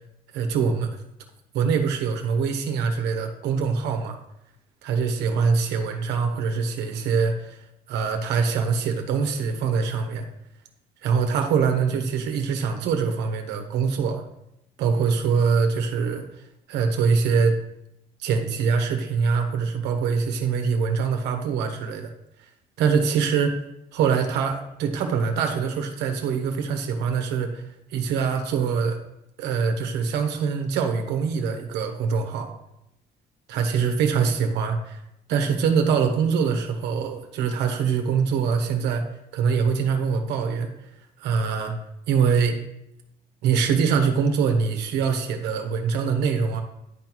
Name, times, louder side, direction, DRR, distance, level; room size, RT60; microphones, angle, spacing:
voice 1, 0.3-0.9 1.5-4.2 4.8-7.6 7.9-10.3 11.0-14.2 14.8-16.3 16.7-17.5 18.2-22.1 22.8-23.6 23.9-27.6 27.9-29.0 29.4-32.5 33.5-35.0 35.3-39.1 39.3-40.7 41.2-41.7 42.1-42.6 43.4-46.6, right 5 dB, 85° right, 5 dB, 1.2 m, -23 dB
10.0 x 4.0 x 4.6 m, 0.83 s
cardioid pair, 110°, 17 cm